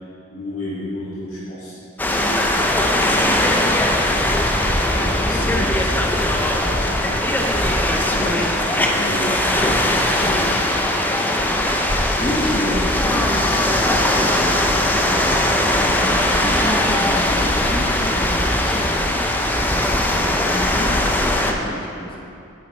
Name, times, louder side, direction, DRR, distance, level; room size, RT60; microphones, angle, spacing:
voice 1, 0.3-1.8 2.1-2.7 4.5-7.5 8.3-11.2, equal, 70° left, -11 dB, 2.0 m, -32 dB
sound 1, 2.0-21.5, left 1 dB, 10° left, 0.5 m, -19 dB
voice 2, 8.1-9.2 12.2-15.5 15.9-19.3 19.6-22.2, left 1 dB, 25° left, -2 dB, 0.9 m, -29 dB
8.9 x 7.9 x 4.1 m, 2.6 s
head